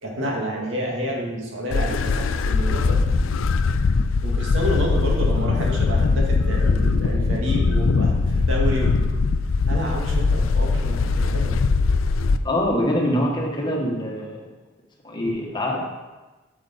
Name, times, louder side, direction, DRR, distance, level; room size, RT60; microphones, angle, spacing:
voice 1, 0.0-3.0 4.2-8.9 9.7-11.6, equal, 70° right, -1 dB, 1.9 m, -29 dB
sound 1, 1.7-12.4, left 4 dB, 85° left, 0.4 m, -21 dB
voice 2, 12.4-14.4 15.0-15.8, left 1 dB, 25° left, -1 dB, 1.4 m, -24 dB
8.8 x 6.9 x 4.2 m, 1.2 s
head